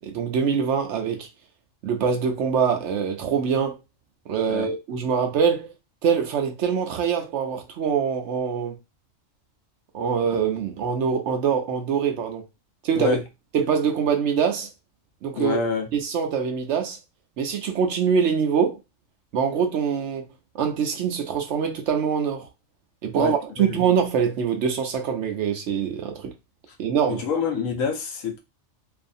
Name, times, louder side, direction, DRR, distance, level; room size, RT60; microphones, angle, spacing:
voice 1, 0.0-1.3 1.8-3.8 4.3-5.7 6.0-8.8 9.9-12.4 12.8-13.2 13.5-14.7 15.2-15.6 15.9-17.0 17.4-18.8 19.3-20.3 20.5-22.5 23.0-26.3 26.8-27.2, right 7 dB, 70° right, 0.8 m, -24 dB
voice 2, 15.4-15.9 23.2-23.8 27.1-28.4, left 6 dB, 80° left, 1.1 m, -27 dB
2.7 x 2.5 x 2.5 m
omnidirectional pair, 1.4 m